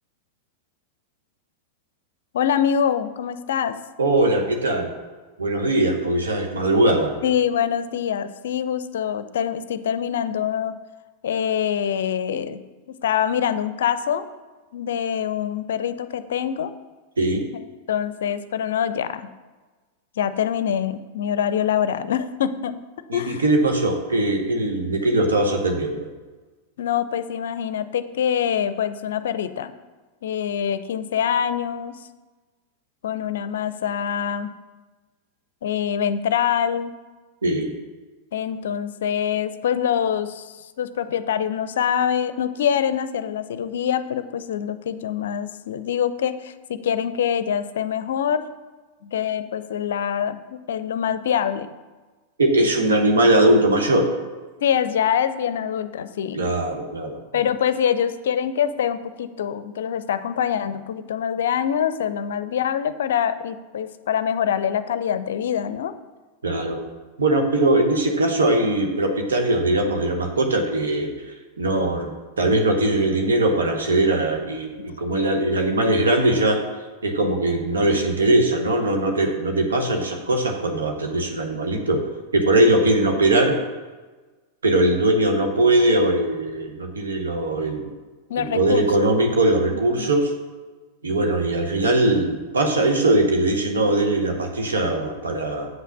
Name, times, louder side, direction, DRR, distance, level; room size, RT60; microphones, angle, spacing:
voice 1, 2.3-3.8 7.2-10.8 11.2-12.6 12.9-14.3 14.7-16.7 17.9-19.3 20.2-22.8 23.1-23.4 26.8-29.7 30.2-32.0 33.0-34.5 35.6-36.9 38.3-48.4 49.0-51.7 54.6-56.5 57.3-65.9 75.1-75.4 88.3-88.9 89.7-90.1, left 8 dB, 60° left, 13 dB, 0.5 m, -24 dB
voice 2, 4.0-4.9 5.4-7.1 17.2-17.4 23.1-26.1 37.4-37.7 52.4-54.1 56.3-57.4 66.4-66.8 67.2-71.1 71.6-76.6 77.0-82.0 82.3-83.6 84.6-87.9 88.4-90.3 91.0-95.7, right 1 dB, 70° right, 3 dB, 1.3 m, -20 dB
7.8 x 5.7 x 6.2 m, 1.3 s
figure-of-eight pair, 90°, 0 cm